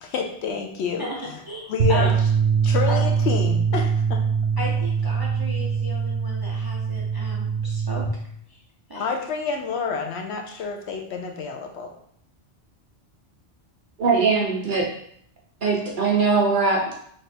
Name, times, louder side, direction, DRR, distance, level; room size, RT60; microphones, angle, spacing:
voice 1, 0.0-1.1 1.7-2.1 2.6-4.2 8.9-11.9, left 5 dB, 70° left, 3 dB, 0.8 m, -28 dB
voice 2, 1.4-2.1 2.9-3.0 4.6-8.0 8.5-8.6 8.9-9.0, left 1 dB, 25° right, -4 dB, 0.5 m, -34 dB
sound 1, 1.8-8.1, right 6 dB, 85° right, 1.1 m, -23 dB
voice 3, 14.0-14.8 15.6-16.8, right 4 dB, 50° right, -3 dB, 0.9 m, -20 dB
3.4 x 2.5 x 4.2 m, 0.66 s
omnidirectional pair, 1.2 m